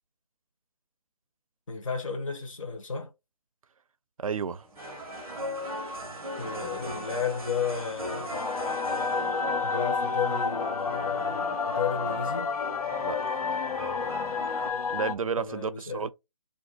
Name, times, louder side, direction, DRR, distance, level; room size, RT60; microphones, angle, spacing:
voice 1, 1.7-3.1 6.4-8.5 9.6-12.5 15.4-16.1, left 6 dB, 60° left, 0.9 m, -33 dB
voice 2, 4.2-4.7 13.0-13.4 14.9-16.1, right 6 dB, 70° right, 0.4 m, -32 dB
sound 1, 4.6-14.7, equal, 5° right, 0.3 m, -37 dB
sound 2, 8.3-15.1, left 5 dB, 80° left, 0.5 m, -30 dB
2.5 x 2.2 x 3.9 m
figure-of-eight pair, 160°, 18 cm